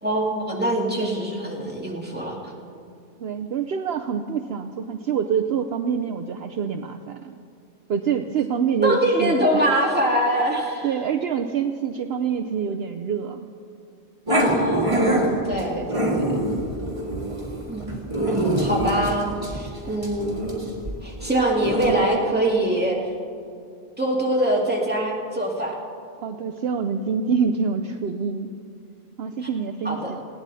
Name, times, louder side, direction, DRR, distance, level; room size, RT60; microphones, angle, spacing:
voice 1, 0.0-2.4 8.8-10.9 14.3-16.3 17.7-17.9 18.2-20.3 21.0-23.0 24.0-25.8 29.8-30.1, right 1 dB, 10° right, -3 dB, 2.3 m, -24 dB
voice 2, 3.2-7.4 7.9-9.6 10.8-13.5 17.1-17.5 17.9-18.3 26.2-28.5 29.2-30.2, right 6 dB, 65° right, 6 dB, 0.9 m, -26 dB
Growling, 14.3-21.9, right 1 dB, 25° right, 2.2 m, -24 dB
20.0 x 17.0 x 4.1 m, 2.4 s
omnidirectional pair, 1.2 m